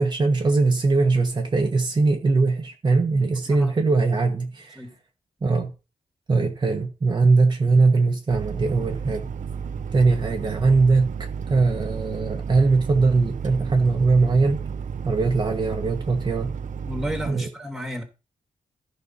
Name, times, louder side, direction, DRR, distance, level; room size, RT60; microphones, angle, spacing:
voice 1, 0.0-4.8 5.4-5.7 6.3-9.3 9.9-11.1 11.5-14.6 15.0-16.5 17.3-17.5, right 3 dB, 35° right, 1.4 m, -21 dB
sound 1, 8.3-17.3, right 6 dB, 70° right, 1.1 m, -32 dB
voice 2, 16.8-18.0, equal, ahead, 2.6 m, -32 dB
14.0 x 5.7 x 5.6 m
wide cardioid pair, 140°, 14 cm